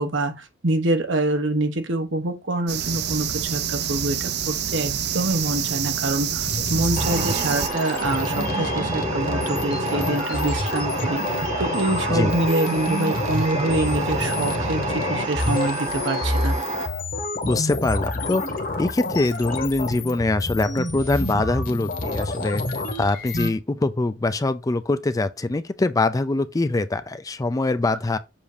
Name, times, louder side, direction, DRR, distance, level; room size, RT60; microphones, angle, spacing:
voice 1, 0.0-16.6, right 2 dB, 80° right, 1.1 m, -25 dB
sound 1, 2.7-7.7, right 9 dB, 60° right, 0.6 m, -27 dB
sound 2, 6.4-23.5, left 2 dB, 50° left, 1.3 m, -28 dB
sound 3, 7.0-16.9, right 3 dB, 35° right, 1.0 m, -29 dB
voice 2, 17.5-18.4 18.8-22.6 23.0-28.2, left 2 dB, 20° left, 0.4 m, -23 dB
7.2 x 2.7 x 4.9 m
head